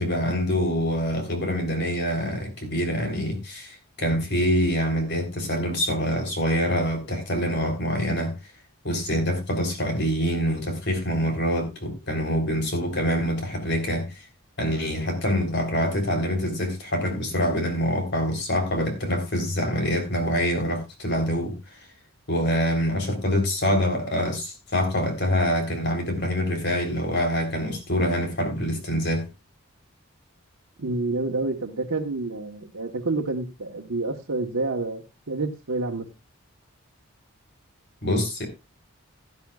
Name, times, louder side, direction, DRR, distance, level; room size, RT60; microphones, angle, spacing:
voice 1, 0.0-8.4 8.8-14.2 14.6-21.8 22.3-29.2 38.0-38.5, equal, 50° left, 3.6 m, -25 dB
voice 2, 30.8-36.0, right 3 dB, 80° right, 1.2 m, -28 dB
16.5 x 11.0 x 2.4 m
head